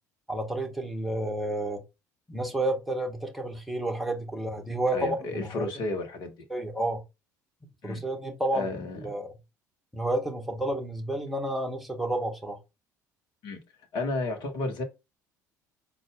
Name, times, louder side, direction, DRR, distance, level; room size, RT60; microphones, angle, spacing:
voice 1, 0.3-1.8 2.3-5.7 6.5-7.0 7.8-8.7 8.9-9.3 9.9-12.6, right 1 dB, ahead, 1.2 m, -30 dB
voice 2, 4.9-6.3 7.8-8.0 8.5-9.0 13.4-13.6 13.9-14.8, left 2 dB, 50° left, 1.2 m, -32 dB
4.0 x 2.4 x 3.6 m
figure-of-eight pair, 60°, 10 cm